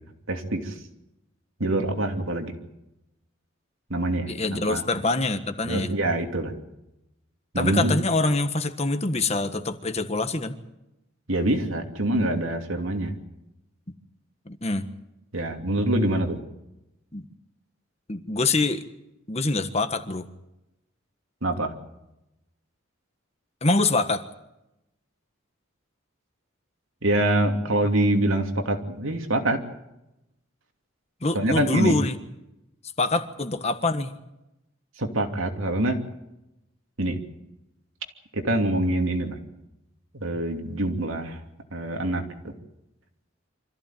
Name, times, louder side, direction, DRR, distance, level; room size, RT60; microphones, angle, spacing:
voice 1, 0.3-0.7 1.6-2.5 3.9-4.8 5.6-6.5 7.5-7.9 11.3-13.1 15.3-16.4 21.4-21.7 27.0-29.6 31.3-32.0 35.0-36.0 37.0-37.2 38.3-39.4 40.1-41.4 41.7-42.2, right 1 dB, 75° right, 4 dB, 2.9 m, -25 dB
voice 2, 4.3-5.9 7.5-10.6 14.4-14.9 17.1-17.2 18.1-18.8 19.3-20.3 23.6-24.2 31.2-32.2 33.0-34.1, left 2 dB, 30° left, 8 dB, 1.5 m, -25 dB
25.0 x 15.0 x 9.2 m, 0.90 s
head